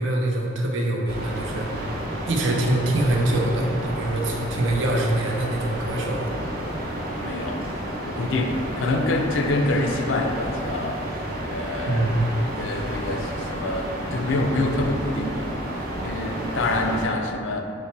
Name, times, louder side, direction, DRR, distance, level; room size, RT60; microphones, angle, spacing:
voice 1, 0.0-1.9 2.2-6.3 11.9-12.3, right 1 dB, 85° right, 0 dB, 0.5 m, -24 dB
sound 1, 1.1-17.0, right 1 dB, 55° right, 0.7 m, -31 dB
voice 2, 7.2-7.6 8.1-15.5 16.0-17.6, left 2 dB, 75° left, 4 dB, 0.4 m, -26 dB
4.0 x 2.2 x 4.2 m, 2.6 s
head